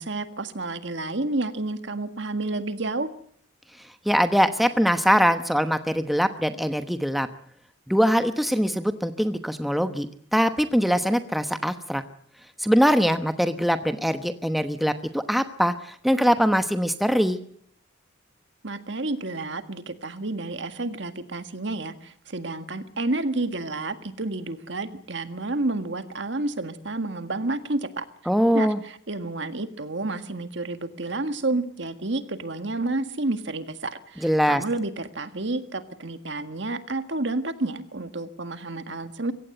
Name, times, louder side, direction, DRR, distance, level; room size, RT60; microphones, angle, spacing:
voice 1, 0.0-3.1 18.6-28.0 28.5-39.3, right 2 dB, 60° right, 10 dB, 1.7 m, -30 dB
voice 2, 4.0-7.3 7.9-12.0 12.6-17.4 28.3-28.8 34.2-34.6, equal, ahead, 8 dB, 1.0 m, -22 dB
23.0 x 17.0 x 8.0 m, 0.63 s
head